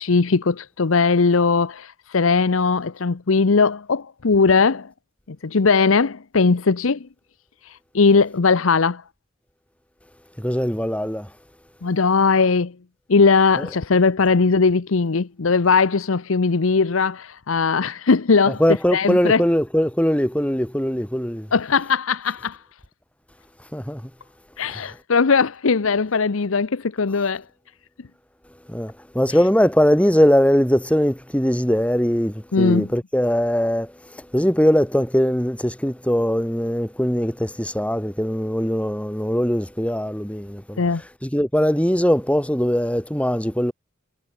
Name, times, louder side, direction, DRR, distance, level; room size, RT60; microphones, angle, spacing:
voice 1, 0.0-4.9 5.3-7.1 7.9-9.0 11.8-12.7 13.1-18.6 18.9-19.4 21.5-22.6 24.6-27.4 32.5-32.9 40.8-41.0, left 4 dB, 75° left, 0.8 m, -19 dB
voice 2, 10.4-11.3 13.6-13.7 18.5-21.5 23.7-24.1 24.7-24.9 28.7-40.8 41.2-43.7, equal, 5° left, 5.2 m, -21 dB
head